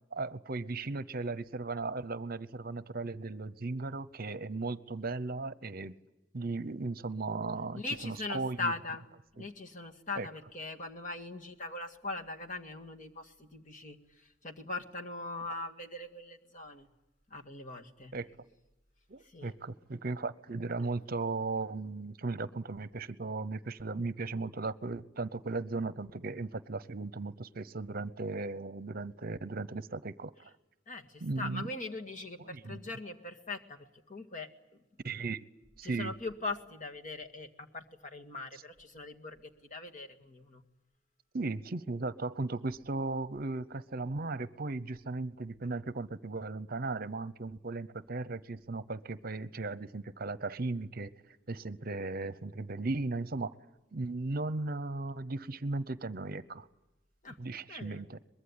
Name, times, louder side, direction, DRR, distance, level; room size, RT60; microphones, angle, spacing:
voice 1, 0.1-6.0 6.3-8.7 9.4-9.5 10.2-10.3 18.1-18.3 19.1-30.5 31.2-31.7 32.4-32.9 35.0-35.4 35.8-36.1 41.3-51.1 51.5-53.5 53.9-56.7 57.4-58.2, right 3 dB, 50° right, 17 dB, 0.9 m, -36 dB
voice 2, 7.8-9.0 9.4-14.0 14.4-16.9 17.3-18.1 19.3-19.5 30.9-34.5 35.1-35.2 35.8-40.6 57.2-57.4 57.7-58.0, left 3 dB, 40° left, 4 dB, 2.0 m, -41 dB
23.5 x 21.5 x 9.8 m, 0.93 s
head